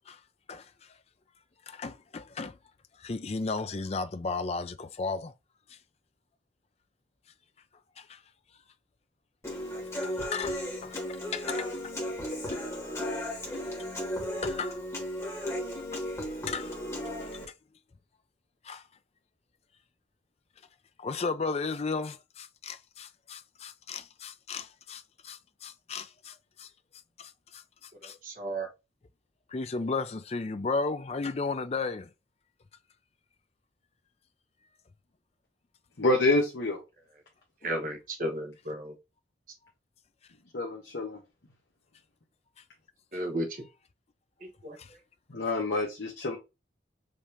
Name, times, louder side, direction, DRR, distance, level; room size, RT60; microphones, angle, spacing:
voice 1, 1.7-2.6 3.0-5.3 5.7-5.8 8.0-8.2 10.2-11.9 12.3-12.6 14.4-14.8 15.9-16.0 16.5-16.8 18.6-18.8 21.0-26.7 27.2-28.2 29.5-32.1 44.8-44.9, left 4 dB, 35° left, 0.4 m, -35 dB
Human voice / Acoustic guitar, 9.4-17.4, left 1 dB, 15° left, 1.5 m, -35 dB
voice 2, 28.0-28.7 37.6-39.0 43.1-43.7 44.4-45.0, right 1 dB, 45° right, 1.1 m, -34 dB
voice 3, 36.0-36.8 40.5-41.2 45.3-46.4, left 2 dB, 60° left, 1.0 m, -27 dB
5.1 x 2.8 x 3.3 m
head